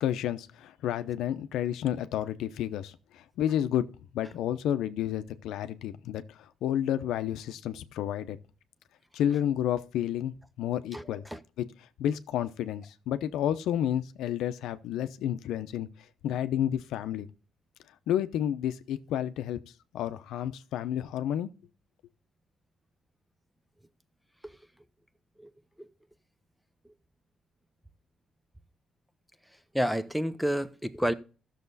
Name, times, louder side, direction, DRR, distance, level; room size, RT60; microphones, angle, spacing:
voice 1, 0.0-3.9 4.1-8.4 9.1-11.2 11.6-11.7 12.0-15.9 16.2-17.3 18.1-19.6 19.9-21.5, left 10 dB, 85° left, 0.7 m, -30 dB
voice 2, 29.7-31.1, equal, ahead, 0.8 m, -29 dB
14.0 x 6.7 x 4.0 m
cardioid pair, 90°, 0 cm